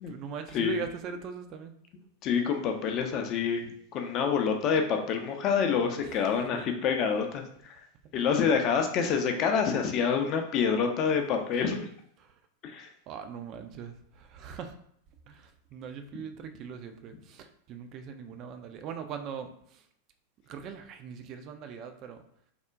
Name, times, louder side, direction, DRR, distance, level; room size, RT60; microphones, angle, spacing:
voice 1, 0.0-1.7 6.0-6.2 8.7-8.8 12.2-12.3 13.1-14.7 15.3-19.8 20.5-22.2, right 7 dB, 35° right, 7 dB, 0.3 m, -41 dB
voice 2, 2.2-3.6 3.9-7.8 8.1-11.9 12.6-12.9, left 6 dB, 35° left, 4 dB, 0.4 m, -27 dB
3.5 x 2.1 x 2.4 m, 0.66 s
figure-of-eight pair, 90°, 0 cm